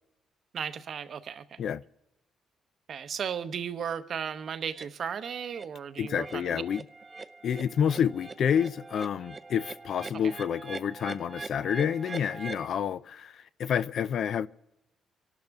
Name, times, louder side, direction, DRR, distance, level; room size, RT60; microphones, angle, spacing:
voice 1, 0.5-1.6 2.9-6.6 10.2-10.3, right 7 dB, 50° right, 0.8 m, -35 dB
sound 1, 4.7-4.9 5.3-5.7 6.0-12.7, right 3 dB, 20° right, 0.5 m, -43 dB
voice 2, 6.0-6.8 7.4-14.5, left 8 dB, 55° left, 0.4 m, -29 dB
26.0 x 12.0 x 3.5 m
cardioid pair, 150°, 0 cm